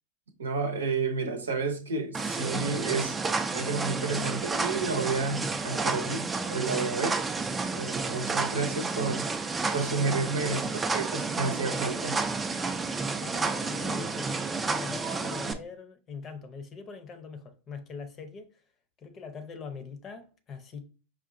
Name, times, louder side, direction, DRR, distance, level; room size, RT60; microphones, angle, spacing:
voice 1, 0.4-3.2 3.5-7.2 7.7-9.2 9.7-12.2, right 4 dB, 90° right, 0.7 m, -31 dB
sound 1, 2.1-15.5, right 4 dB, 15° right, 0.4 m, -31 dB
voice 2, 13.2-18.5 19.0-20.9, left 5 dB, 35° left, 0.7 m, -42 dB
4.9 x 2.4 x 2.6 m
hypercardioid pair, 100°, 0 cm